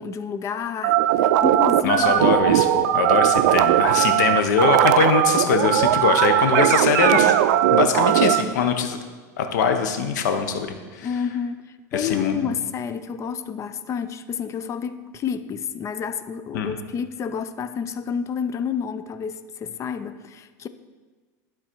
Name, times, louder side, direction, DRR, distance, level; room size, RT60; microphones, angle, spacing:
voice 1, 0.0-2.2 11.0-20.7, left 7 dB, 30° left, 12 dB, 0.4 m, -29 dB
sound 1, 0.8-8.4, right 12 dB, 75° right, 0.4 m, -18 dB
voice 2, 1.8-7.3 7.7-9.0 9.4-11.1 11.9-12.5 16.5-16.8, left 6 dB, 85° left, 6 dB, 0.8 m, -22 dB
11.5 x 3.9 x 4.5 m, 1.4 s
supercardioid pair, 120°, 9 cm